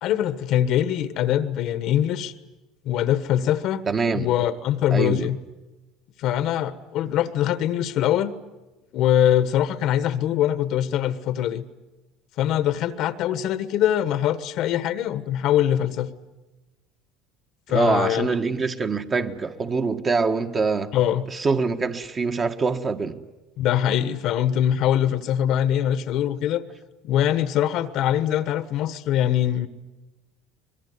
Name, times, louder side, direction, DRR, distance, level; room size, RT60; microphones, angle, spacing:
voice 1, 0.0-2.3 2.8-3.8 4.1-5.4 6.2-8.3 8.9-11.7 12.4-16.1 17.7-18.3 20.9-21.3 23.6-26.6 27.0-29.7, left 11 dB, 60° left, 1.3 m, -23 dB
voice 2, 3.9-4.3 4.9-5.3 17.7-20.9 21.3-23.2, right 4 dB, 30° right, 1.6 m, -24 dB
24.0 x 21.5 x 9.7 m
supercardioid pair, 105°, 0 cm